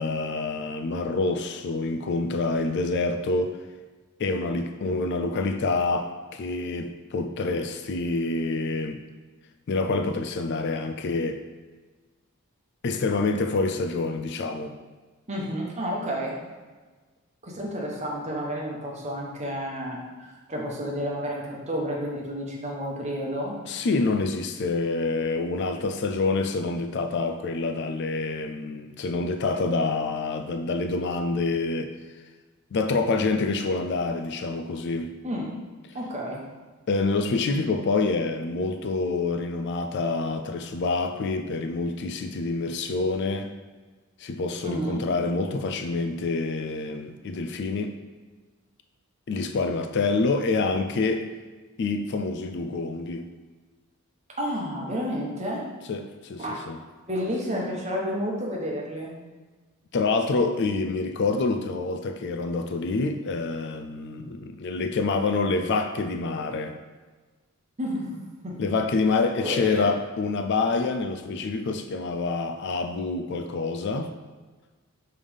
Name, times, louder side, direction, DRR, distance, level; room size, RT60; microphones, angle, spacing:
voice 1, 0.0-3.6 4.2-9.0 9.7-11.4 12.8-14.7 23.7-31.9 32.7-35.2 36.9-43.5 44.2-48.0 49.3-51.3 51.8-53.3 55.9-56.8 59.9-66.7 68.6-74.1, left 3 dB, 50° left, 0.4 m, -27 dB
voice 2, 15.3-16.3 17.4-23.6 35.2-35.5 35.9-36.4 44.6-45.0 54.4-55.6 56.4-56.6 57.1-59.1 67.8-68.2 68.4-68.6 69.4-69.9, equal, 30° right, 1.1 m, -30 dB
5.4 x 3.4 x 5.2 m
head